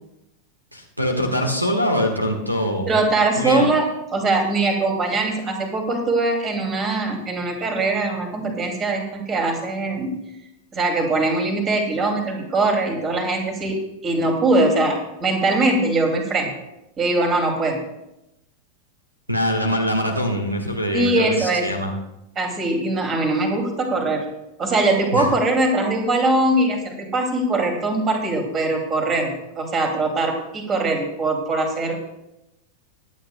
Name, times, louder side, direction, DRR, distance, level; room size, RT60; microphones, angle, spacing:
voice 1, 0.7-2.9 3.3-3.7 19.3-21.9 25.1-25.3, equal, 90° right, 4 dB, 1.4 m, -23 dB
voice 2, 2.9-3.9 4.1-10.1 10.7-16.5 17.0-17.8 20.9-21.6 22.4-24.2 24.6-32.1, right 2 dB, 25° right, 3 dB, 2.6 m, -21 dB
23.0 x 8.7 x 2.3 m, 0.88 s
figure-of-eight pair, 90°, 0 cm